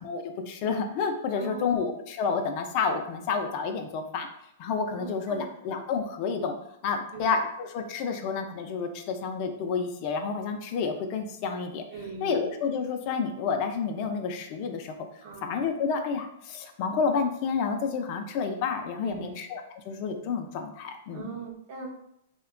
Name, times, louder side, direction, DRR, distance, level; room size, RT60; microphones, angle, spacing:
voice 1, 0.0-4.3 4.6-6.6 6.8-11.8 12.2-14.9 15.4-21.3, left 5 dB, 45° left, 5 dB, 0.4 m, -30 dB
voice 2, 1.3-1.9 5.0-5.4 7.1-7.2 11.9-12.4 15.2-15.6 19.0-19.4 21.1-21.9, right 4 dB, 55° right, 0 dB, 0.7 m, -40 dB
2.8 x 2.1 x 2.4 m, 0.77 s
hypercardioid pair, 130°, 0 cm